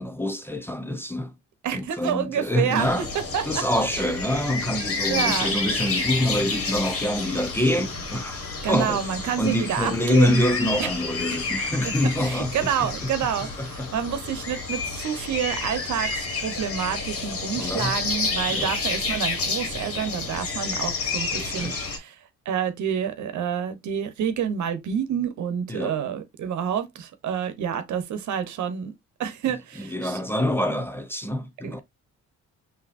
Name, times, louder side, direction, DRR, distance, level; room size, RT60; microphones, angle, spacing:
voice 1, 0.0-1.3 1.7-3.1 3.5-9.0 9.4-12.5 12.8-13.1 13.6-13.9 17.5-18.0 18.5-18.7 21.3-21.9 25.7-26.0 29.8-31.8, left 1 dB, 5° left, 0.7 m, -26 dB
voice 2, 1.6-3.1 3.3-3.6 4.0-4.1 5.1-5.6 8.6-10.4 10.8-10.9 11.8-11.9 12.2-22.2 22.4-28.9 29.2-30.2 31.6-31.7, right 8 dB, 70° right, 1.1 m, -28 dB
sound 1, 2.8-22.0, left 3 dB, 50° left, 1.6 m, -30 dB
5.8 x 3.0 x 2.5 m
cardioid pair, 90°, 30 cm